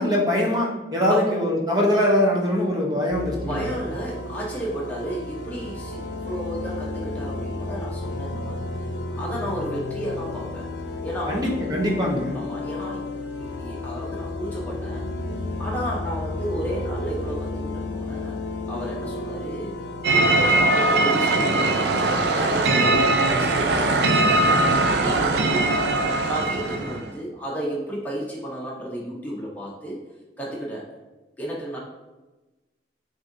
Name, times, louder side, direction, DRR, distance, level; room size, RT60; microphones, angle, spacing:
voice 1, 0.0-3.7 11.3-12.4 22.6-23.0, left 1 dB, 20° right, -2 dB, 0.9 m, -23 dB
sound 1, 3.1-21.6, left 2 dB, 75° left, 0.5 m, -32 dB
voice 2, 3.3-8.9 9.2-10.7 11.0-11.4 12.3-13.1 13.4-15.1 15.6-18.4 18.7-19.7 20.1-21.9 22.3-25.9 26.3-30.0 30.4-30.9 31.4-31.8, equal, 10° left, -5 dB, 0.9 m, -33 dB
sound 2, 20.0-27.1, right 2 dB, 70° right, 0.5 m, -20 dB
6.4 x 2.7 x 2.7 m, 1.1 s
head